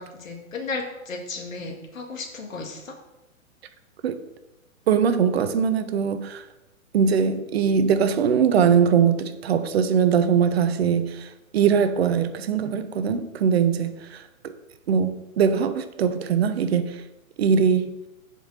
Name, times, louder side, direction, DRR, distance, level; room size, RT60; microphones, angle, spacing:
voice 1, 0.0-2.9, left 3 dB, 70° left, 3 dB, 2.1 m, -34 dB
voice 2, 4.9-6.4 6.9-14.2 14.9-17.0 17.4-17.9, right 7 dB, 50° right, 10 dB, 0.9 m, -21 dB
7.7 x 5.5 x 5.7 m, 0.96 s
hypercardioid pair, 130°, 41 cm